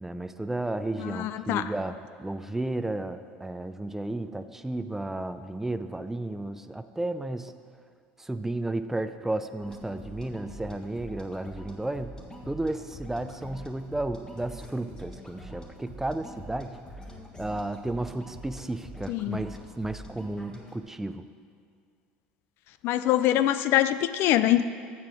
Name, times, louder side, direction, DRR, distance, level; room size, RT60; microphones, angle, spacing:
voice 1, 0.0-7.5 8.2-12.1 12.5-16.8 17.4-21.2, right 2 dB, 10° right, 10 dB, 0.4 m, -33 dB
voice 2, 1.0-1.7 19.1-19.4 22.8-24.6, left 13 dB, 60° left, 13 dB, 0.4 m, -24 dB
sound 1, 9.6-20.8, equal, 15° left, 1.5 m, -45 dB
7.4 x 7.0 x 6.2 m, 2.2 s
supercardioid pair, 90°, 4 cm